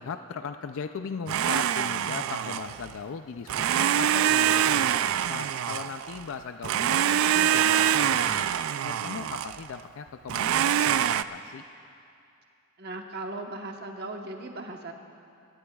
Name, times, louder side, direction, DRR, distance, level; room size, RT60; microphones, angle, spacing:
voice 1, 0.0-4.9 5.3-8.5 8.8-11.6, left 5 dB, 65° left, 8 dB, 0.4 m, -38 dB
Domestic sounds home sounds, 1.3-2.9 3.5-6.2 6.6-9.7 10.3-11.2, right 10 dB, 70° right, 0.3 m, -25 dB
voice 2, 12.8-14.9, right 2 dB, 50° right, 3 dB, 1.1 m, -37 dB
22.5 x 17.5 x 2.3 m, 2.5 s
head